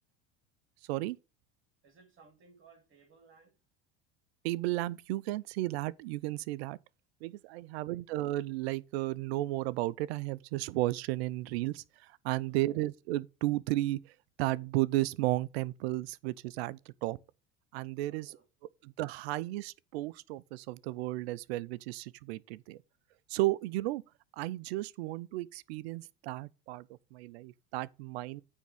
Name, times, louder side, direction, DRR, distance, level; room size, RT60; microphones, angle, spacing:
voice 1, 1.8-3.6 12.3-12.6 18.0-18.5, right 4 dB, 40° right, 2.4 m, -60 dB
voice 2, 4.4-6.8 7.2-14.1 14.4-17.2 17.7-18.4 18.8-22.8 23.3-24.0 24.3-28.4, right 18 dB, 75° right, 0.6 m, -34 dB
9.2 x 3.7 x 6.2 m
hypercardioid pair, 80°, 32 cm